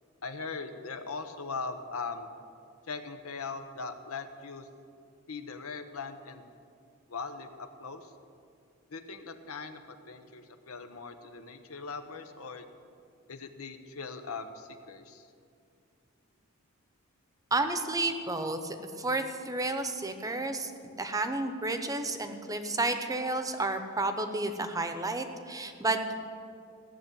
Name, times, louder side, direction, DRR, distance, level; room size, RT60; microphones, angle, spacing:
voice 1, 0.2-2.3 2.9-4.7 5.3-6.5 7.1-8.1 8.9-12.7 13.3-15.3, left 4 dB, 85° left, 7 dB, 1.0 m, -40 dB
voice 2, 17.5-20.7 21.0-26.1, right 2 dB, 15° right, 7 dB, 0.8 m, -31 dB
16.0 x 6.9 x 9.1 m, 2.4 s
head